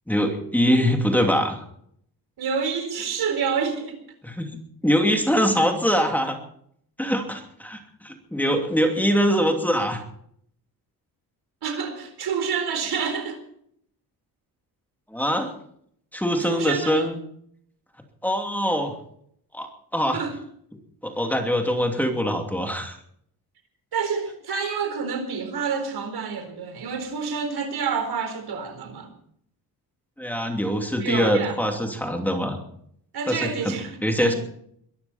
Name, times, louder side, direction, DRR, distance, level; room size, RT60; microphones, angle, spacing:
voice 1, 0.1-1.6 4.2-4.5 4.8-6.4 7.0-10.0 15.1-15.5 16.1-17.2 18.2-18.9 19.5-20.2 21.0-23.0 30.2-32.6 33.3-33.8 34.0-34.3, equal, 5° left, 3 dB, 2.8 m, -23 dB
voice 2, 2.4-4.0 11.6-13.4 16.5-17.0 20.1-20.4 23.9-29.1 31.0-31.9 33.1-34.3, right 6 dB, 75° right, 7 dB, 4.4 m, -28 dB
22.5 x 14.0 x 4.3 m, 0.67 s
cardioid pair, 130°, 39 cm